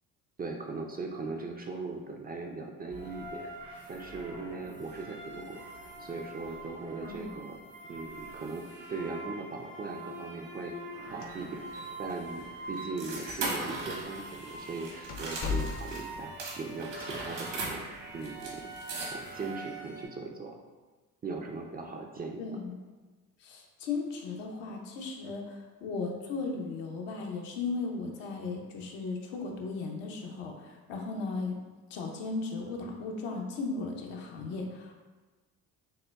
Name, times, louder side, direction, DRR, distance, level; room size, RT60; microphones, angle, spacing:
voice 1, 0.4-7.6 7.9-10.7 11.1-17.8 18.1-18.7 19.0-20.6 21.2-22.4, right 3 dB, 25° right, 1 dB, 0.4 m, -39 dB
sound 1, 2.9-20.1, right 2 dB, 90° right, 1.4 m, -45 dB
voice 2, 7.0-7.3 22.4-22.7 23.4-31.6 31.9-34.9, left 4 dB, 75° left, 1 dB, 0.8 m, -36 dB
sound 2, 11.2-11.8 12.1-12.2 13.0-13.1 13.8-14.0 14.4-14.5 15.1-16.2, left 5 dB, 35° left, 0.5 m, -36 dB
sound 3, 11.3-16.0 16.4-19.5, right 2 dB, 70° right, 1.2 m, -40 dB
6.4 x 2.1 x 2.3 m, 1.3 s
hypercardioid pair, 60°, 43 cm